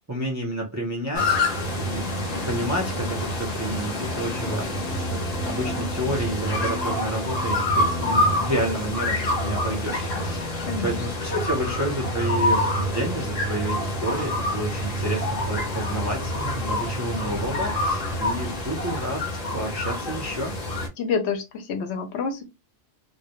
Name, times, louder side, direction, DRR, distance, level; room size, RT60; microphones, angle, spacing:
voice 1, 0.1-1.4 1.7-19.2 19.5-20.5, right 1 dB, 25° right, 0.3 m, -30 dB
sound 1, 1.1-20.9, left 1 dB, 45° left, 0.6 m, -27 dB
voice 2, 10.7-11.0 21.0-22.4, left 5 dB, 70° left, 0.8 m, -28 dB
2.2 x 2.1 x 2.8 m
omnidirectional pair, 1.2 m